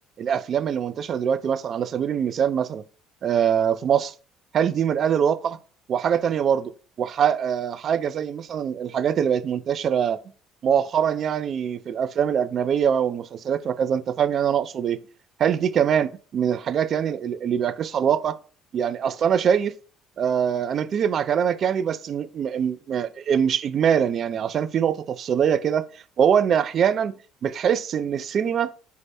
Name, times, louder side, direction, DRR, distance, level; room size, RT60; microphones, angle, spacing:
voice 1, 0.2-2.8 3.2-4.1 4.5-5.6 5.9-6.7 7.0-10.2 10.6-15.0 15.4-18.4 18.7-19.8 20.2-27.1 27.4-28.7, right 8 dB, 50° right, 0.4 m, -23 dB
4.6 x 2.1 x 4.2 m
hypercardioid pair, 55°, 0 cm